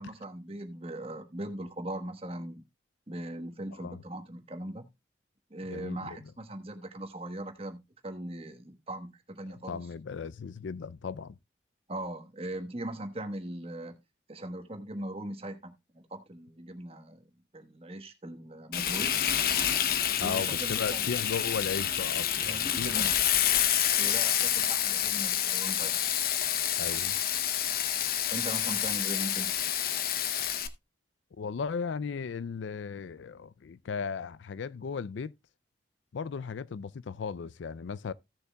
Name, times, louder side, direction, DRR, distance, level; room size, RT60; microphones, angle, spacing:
voice 1, 0.0-2.6 3.1-4.9 5.5-9.8 11.9-14.0 14.3-17.2 17.5-19.2 20.2-21.0 22.4-23.1 24.0-26.0 28.3-29.5, right 1 dB, 30° right, 1.2 m, -40 dB
voice 2, 5.7-6.2 9.7-11.4 20.2-23.1 26.8-27.2 31.4-35.3 36.1-38.1, left 6 dB, 75° left, 0.4 m, -36 dB
Frying (food), 18.7-30.7, left 10 dB, 50° left, 0.8 m, -28 dB
16.0 x 6.7 x 2.3 m
head